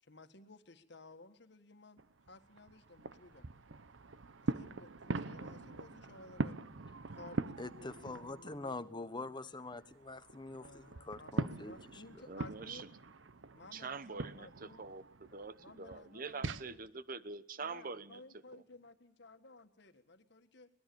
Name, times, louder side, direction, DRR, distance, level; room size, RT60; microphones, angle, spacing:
voice 1, 0.0-2.0 2.3-3.5 4.4-6.6 7.1-9.1 9.4-9.5 10.6-11.4 11.6-12.8 13.6-14.8 15.3-16.8 17.6-20.7, left 2 dB, 65° left, 9 dB, 1.8 m, -56 dB
sound 1, 2.0-8.8 9.2-16.6, right 2 dB, 90° right, 0.9 m, -43 dB
voice 2, 7.6-12.3, left 2 dB, 25° left, 12 dB, 1.1 m, -45 dB
voice 3, 12.3-12.9 13.7-18.2 18.5-18.6, right 4 dB, 50° right, 15 dB, 1.0 m, -45 dB
24.0 x 20.0 x 7.0 m, 0.65 s
head